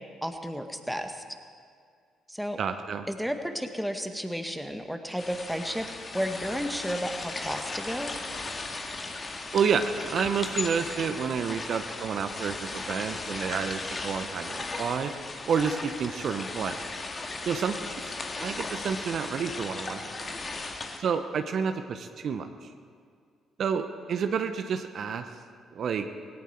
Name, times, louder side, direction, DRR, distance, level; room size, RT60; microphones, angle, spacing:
voice 1, 0.2-1.2 2.3-2.6 3.1-5.9 6.1-8.1, equal, ahead, 6 dB, 1.7 m, -32 dB
voice 2, 2.6-3.1 9.5-15.1 15.5-16.8 17.5-20.3 21.0-22.5 23.6-25.2 25.7-26.0, right 6 dB, 55° right, 8 dB, 0.8 m, -29 dB
sound 1, 5.2-21.0, left 3 dB, 35° left, 1.8 m, -36 dB
18.0 x 17.5 x 4.5 m, 2.1 s
hypercardioid pair, 50°, 0 cm